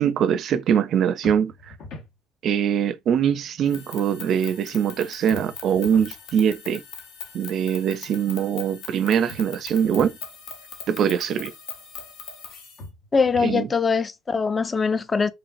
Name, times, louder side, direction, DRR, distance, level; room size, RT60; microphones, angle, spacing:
voice 1, 0.0-1.5 2.4-6.8 7.3-10.1 10.9-11.5 13.4-13.7, right 8 dB, 50° right, 0.4 m, -22 dB
sound 1, 1.2-2.1 5.3-6.2 9.3-10.2 12.8-13.7, left 2 dB, 60° left, 1.0 m, -41 dB
sound 2, 3.7-12.8, left 6 dB, 80° left, 1.1 m, -41 dB
voice 2, 13.1-15.3, left 5 dB, 25° left, 0.4 m, -22 dB
4.8 x 3.0 x 2.5 m
cardioid pair, 130°, 0 cm